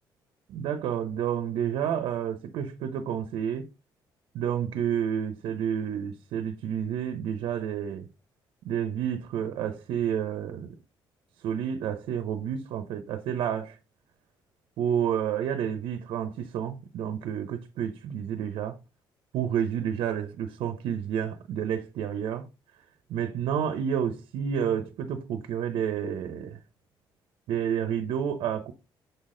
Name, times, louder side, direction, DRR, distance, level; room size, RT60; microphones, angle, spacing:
voice 1, 0.5-3.7 4.3-8.1 8.6-10.7 11.4-13.8 14.8-18.8 19.3-22.5 23.1-26.6 27.5-28.7, right 8 dB, 85° right, 0.7 m, -30 dB
6.9 x 4.1 x 3.8 m
cardioid pair, 110°, 9 cm